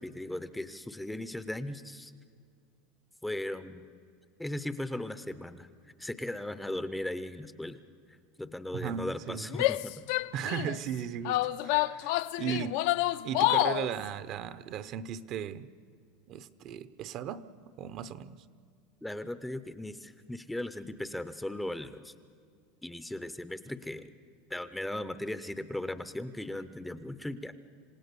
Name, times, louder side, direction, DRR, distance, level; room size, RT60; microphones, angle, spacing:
voice 1, 0.0-2.1 3.2-3.8 4.4-5.7 6.0-7.8 8.4-10.0 12.5-12.6 19.0-22.1 22.8-24.1 24.5-27.5, left 1 dB, 5° left, 0.6 m, -37 dB
voice 2, 8.7-9.5 10.3-12.8 13.2-15.7 16.3-18.4, right 9 dB, 40° right, 0.7 m, -37 dB
Female speech woman speaking / Yell, 9.5-10.8 11.3-13.9, left 17 dB, 60° left, 0.5 m, -28 dB
27.5 x 17.0 x 6.8 m
supercardioid pair, 165°, 0 cm